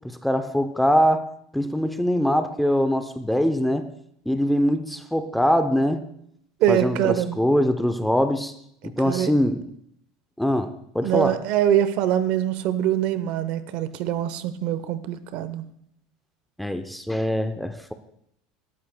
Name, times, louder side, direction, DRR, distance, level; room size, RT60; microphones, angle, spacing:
voice 1, 0.0-1.3 1.5-3.9 4.3-6.0 6.7-8.5 8.8-9.6 10.4-11.4 16.6-17.9, equal, ahead, 9 dB, 0.6 m, -23 dB
voice 2, 6.6-7.4 9.1-9.3 11.0-15.6, right 11 dB, 55° right, 13 dB, 0.8 m, -23 dB
17.5 x 13.0 x 2.2 m, 0.72 s
supercardioid pair, 145°, 2 cm